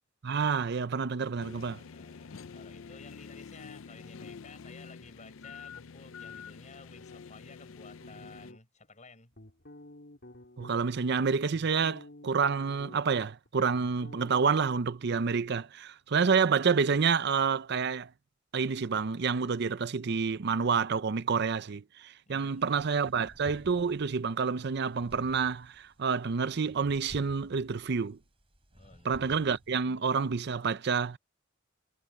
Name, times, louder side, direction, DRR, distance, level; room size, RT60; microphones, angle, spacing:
voice 1, 0.2-1.8 10.6-18.1 18.5-28.2 29.0-31.2, right 5 dB, 55° right, 0.5 m, -28 dB
sound 1, 1.4-8.5, left 5 dB, 75° left, 0.5 m, -47 dB
voice 2, 1.9-9.3 22.2-22.9 28.7-30.0, left 3 dB, 35° left, 7.0 m, -54 dB
sound 2, 8.0-8.9 9.3-10.8 11.3-13.2 13.5-14.5, left 1 dB, 55° left, 4.7 m, -50 dB
sound 3, 22.5-29.8, equal, 30° right, 4.6 m, -53 dB
head